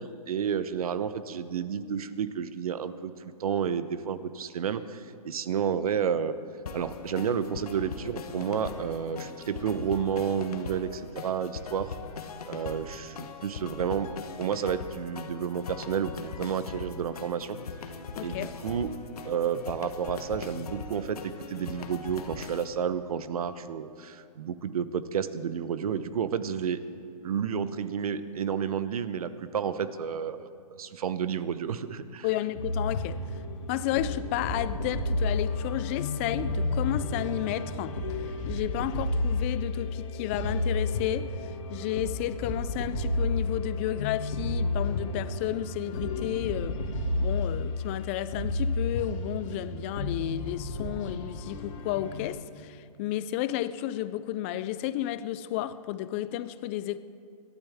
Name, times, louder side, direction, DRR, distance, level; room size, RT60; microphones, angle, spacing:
voice 1, 0.0-6.3 6.7-11.9 12.5-17.6 18.2-18.9 19.2-26.8 27.2-30.5 30.8-32.3, right 7 dB, 65° right, 0.9 m, -31 dB
sound 1, 6.7-22.6, left 5 dB, 70° left, 1.3 m, -41 dB
voice 2, 18.2-18.5 32.2-33.2 33.7-38.0 38.5-41.4 41.7-46.8 47.2-57.0, left 13 dB, 20° left, 0.3 m, -32 dB
sound 2, 32.6-52.3, left 2 dB, 55° left, 2.1 m, -31 dB
26.0 x 12.0 x 3.6 m
hypercardioid pair, 145°, 20 cm